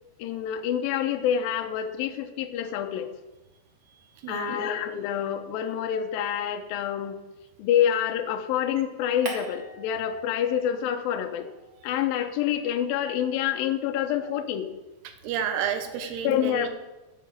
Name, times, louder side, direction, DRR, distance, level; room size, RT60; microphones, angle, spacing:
voice 1, 0.2-3.1 4.3-7.2 7.6-11.5 11.8-14.7 16.2-16.7, left 9 dB, 80° left, 6 dB, 2.1 m, -27 dB
voice 2, 4.2-4.7 15.0-16.7, right 8 dB, 75° right, 8 dB, 2.8 m, -31 dB
sound 1, 9.2-10.9 11.2-13.7, right 3 dB, 35° right, 1.6 m, -44 dB
10.5 x 7.1 x 7.4 m, 1.1 s
omnidirectional pair, 5.2 m